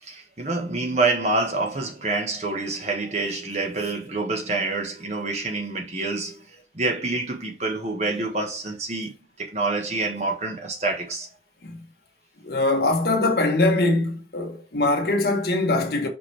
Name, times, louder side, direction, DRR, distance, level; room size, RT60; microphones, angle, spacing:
voice 1, 0.0-6.4 6.7-11.3, right 3 dB, 40° right, 1.5 m, -27 dB
voice 2, 12.4-16.1, left 2 dB, 65° left, 1.4 m, -22 dB
5.4 x 5.3 x 3.4 m
head